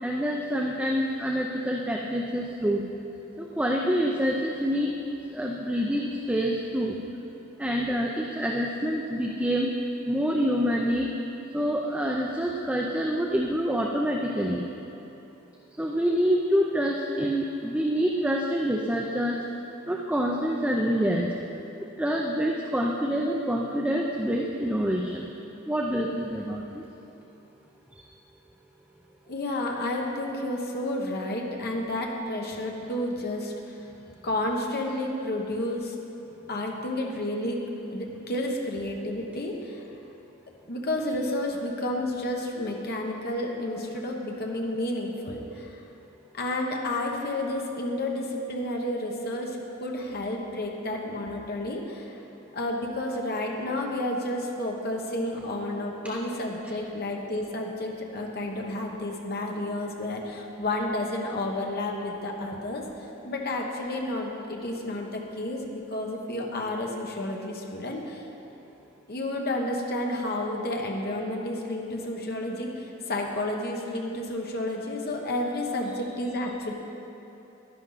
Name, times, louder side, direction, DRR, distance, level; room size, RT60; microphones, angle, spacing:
voice 1, 0.0-2.9 3.4-4.9 5.3-7.0 7.6-9.7 10.1-11.1 11.5-14.7 15.8-19.4 19.9-21.3 22.0-25.3 25.7-26.8 27.9-28.0, equal, 5° right, -1 dB, 0.5 m, -26 dB
voice 2, 29.3-33.8 34.2-35.9 36.5-37.6 37.9-39.8 40.7-45.7 46.3-52.2 52.5-68.2 69.1-76.7, left 1 dB, 50° left, 0 dB, 1.2 m, -31 dB
11.0 x 10.5 x 4.1 m, 2.9 s
head